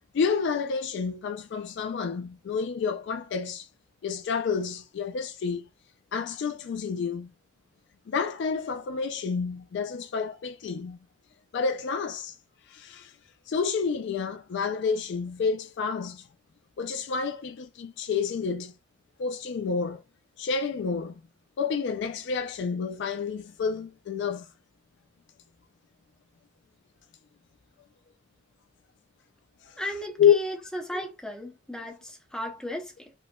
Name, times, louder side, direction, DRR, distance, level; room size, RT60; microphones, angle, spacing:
voice 1, 0.1-3.7 4.0-5.7 6.1-7.3 8.1-11.0 11.5-12.4 12.7-13.1 13.5-16.3 16.8-18.7 19.2-20.0 20.4-21.2 21.6-24.4 29.6-29.8 30.2-30.3 30.7-30.8, left 6 dB, 55° left, 0.3 m, -29 dB
voice 2, 29.8-33.1, equal, 5° left, 0.7 m, -35 dB
5.0 x 2.1 x 2.2 m
head